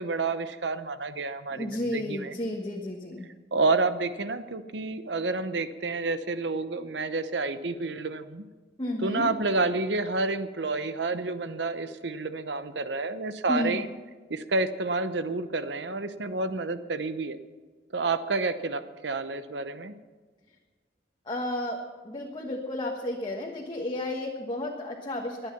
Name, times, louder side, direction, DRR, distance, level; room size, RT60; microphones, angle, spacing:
voice 1, 0.0-2.4 3.5-8.4 9.0-13.9 14.3-17.4 17.9-19.9, right 3 dB, 70° right, 11 dB, 0.9 m, -29 dB
voice 2, 1.5-3.3 8.8-9.3 13.5-13.8 21.2-25.5, left 1 dB, 25° left, -1 dB, 1.4 m, -32 dB
22.5 x 9.0 x 5.9 m, 1.4 s
head